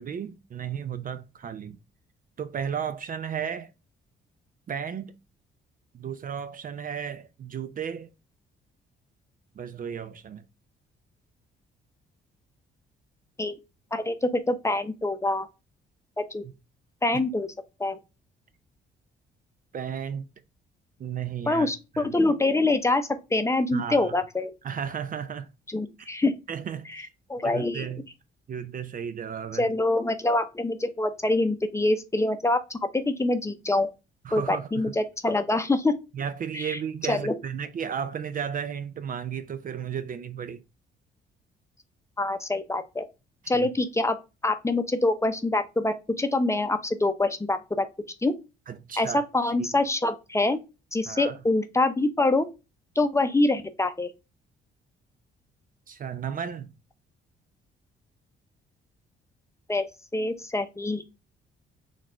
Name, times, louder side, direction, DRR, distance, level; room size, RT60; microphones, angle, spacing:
voice 1, 0.0-1.8 2.4-3.7 4.7-5.1 5.9-8.1 9.6-10.4 19.7-20.2 21.0-21.7 22.0-22.1 23.7-24.1 24.6-25.5 26.0-26.1 26.5-27.1 27.4-28.1 28.5-29.7 34.2-34.9 36.2-40.6 43.5-43.7 48.7-49.2 49.6-49.7 51.1-51.4 55.9-56.7, right 8 dB, 45° right, 0.5 m, -34 dB
voice 2, 13.9-15.5 16.2-16.4 17.0-17.5 17.8-18.0 21.5-24.5 25.7-26.3 26.9-27.9 29.5-33.9 34.3-35.9 36.5-36.8 37.1-37.3 42.2-43.1 43.5-44.2 44.4-47.9 48.2-48.3 49.0-50.6 50.9-52.5 53.0-54.1 59.7-61.0, left 2 dB, 15° left, 0.7 m, -25 dB
4.2 x 2.4 x 4.3 m
cardioid pair, 90°, 20 cm